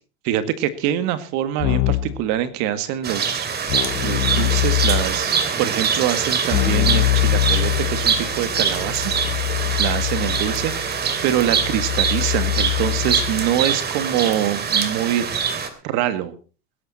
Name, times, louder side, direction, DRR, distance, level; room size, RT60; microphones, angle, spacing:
voice 1, 0.2-3.5 4.0-15.3 15.6-16.3, right 11 dB, 60° right, 12 dB, 2.0 m, -25 dB
Keyboard (musical), 1.6-2.2 3.7-5.3 6.5-13.5, left 17 dB, 55° left, 1.2 m, -23 dB
sound 1, 3.0-15.7, right 6 dB, 30° right, 2.9 m, -24 dB
20.0 x 11.5 x 4.3 m, 0.36 s
supercardioid pair, 120°, 32 cm